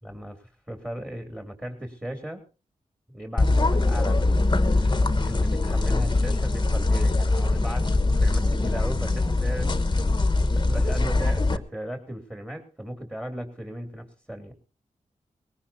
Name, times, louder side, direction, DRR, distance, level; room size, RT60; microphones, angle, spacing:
voice 1, 0.0-2.4 3.1-7.9 8.2-10.2 10.5-14.6, equal, 15° right, 6 dB, 3.0 m, -37 dB
sound 1, 3.4-11.6, left 2 dB, 30° left, 1.2 m, -22 dB
19.5 x 17.5 x 2.7 m, 0.33 s
cardioid pair, 60°, 14 cm